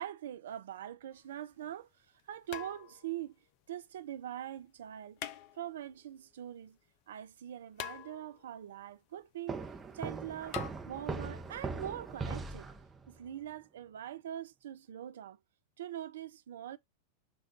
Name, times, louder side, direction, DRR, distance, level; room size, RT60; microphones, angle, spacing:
voice 1, 0.0-3.4 3.7-5.2 5.6-6.8 7.1-9.6 9.9-12.7 13.1-15.4 15.8-16.8, right 11 dB, 60° right, 0.4 m, -43 dB
sound 1, 1.1-1.2 2.5-3.2 5.2-5.9 7.8-8.6 10.5-10.7, left 10 dB, 45° left, 0.4 m, -44 dB
sound 2, 9.5-13.2, right 4 dB, 15° right, 0.6 m, -40 dB
5.9 x 2.3 x 3.7 m
figure-of-eight pair, 90°, 0 cm